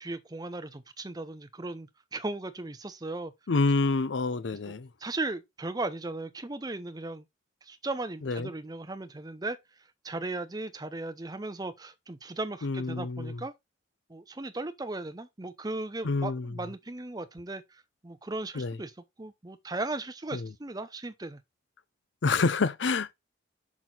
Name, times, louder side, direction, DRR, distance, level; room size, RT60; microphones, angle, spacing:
voice 1, 0.0-3.3 5.0-7.2 7.6-9.6 10.0-13.5 14.1-18.9 19.2-21.4, right 2 dB, 20° right, 0.6 m, -37 dB
voice 2, 3.5-4.9 8.2-8.5 12.6-13.4 16.0-16.6 18.5-18.8 20.3-20.5 22.2-23.1, left 3 dB, 70° left, 0.6 m, -28 dB
6.1 x 6.0 x 3.8 m
head